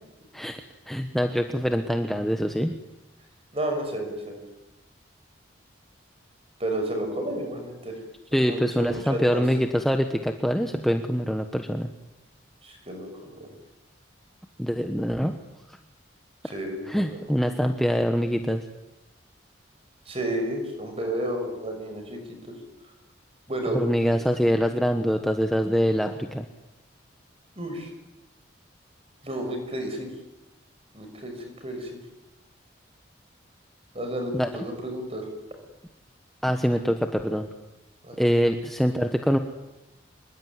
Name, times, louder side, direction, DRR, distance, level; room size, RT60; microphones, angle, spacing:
voice 1, 0.9-2.8 8.3-11.9 14.6-15.4 16.9-18.6 23.7-26.5 34.3-34.5 36.4-37.5 38.2-39.4, equal, ahead, 5 dB, 1.3 m, -24 dB
voice 2, 3.5-4.4 6.6-8.0 8.3-9.4 12.6-13.5 16.4-17.2 20.1-22.6 23.5-24.1 27.5-27.9 29.2-30.1 30.9-32.0 33.9-35.3 38.0-38.3, right 1 dB, 30° right, 5 dB, 6.3 m, -32 dB
26.0 x 22.0 x 9.8 m, 0.96 s
head